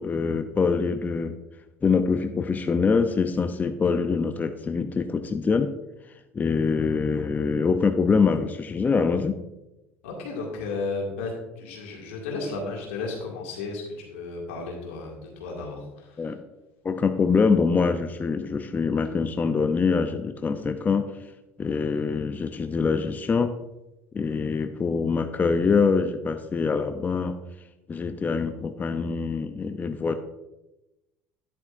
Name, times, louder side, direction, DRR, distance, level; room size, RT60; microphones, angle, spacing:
voice 1, 0.0-1.4 1.8-5.7 6.3-9.4 16.2-16.4 16.8-21.1 21.6-23.5 24.1-27.3 27.9-30.1, left 5 dB, 25° left, 8 dB, 0.6 m, -24 dB
voice 2, 10.0-16.3, left 3 dB, 80° left, -1 dB, 2.2 m, -34 dB
10.0 x 7.9 x 2.6 m, 0.97 s
hypercardioid pair, 75°, 7 cm